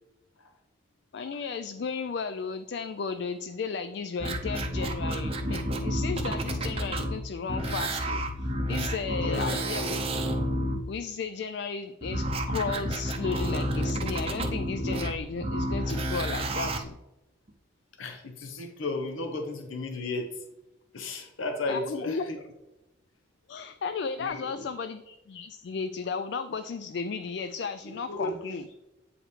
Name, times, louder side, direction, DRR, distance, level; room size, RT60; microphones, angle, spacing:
voice 1, 1.1-10.1 10.9-17.0 21.7-22.2 23.5-28.6, left 5 dB, 60° left, 10 dB, 0.3 m, -34 dB
Alien Roars, 4.2-7.2 7.5-10.8 12.0-16.8 17.5-17.6, equal, 30° right, 0.6 m, -30 dB
voice 2, 9.2-9.7 18.0-20.4 20.9-22.4 24.2-24.7 27.8-28.4, left 2 dB, 85° left, 4 dB, 0.8 m, -34 dB
8.6 x 4.9 x 3.2 m, 0.99 s
head